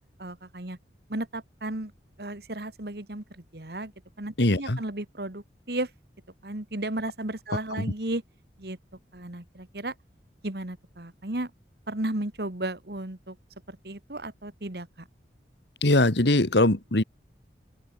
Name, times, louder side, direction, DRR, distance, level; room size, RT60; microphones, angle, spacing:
voice 1, 0.2-0.8 1.1-1.9 2.2-3.9 4.2-5.9 6.4-8.2 8.6-8.8 9.1-9.9 10.4-11.5 11.9-13.4 13.7-15.1, right 1 dB, 65° right, 2.1 m, -34 dB
voice 2, 4.4-4.8 7.8-7.9 15.8-17.0, left 2 dB, 80° left, 2.1 m, -21 dB
open air
head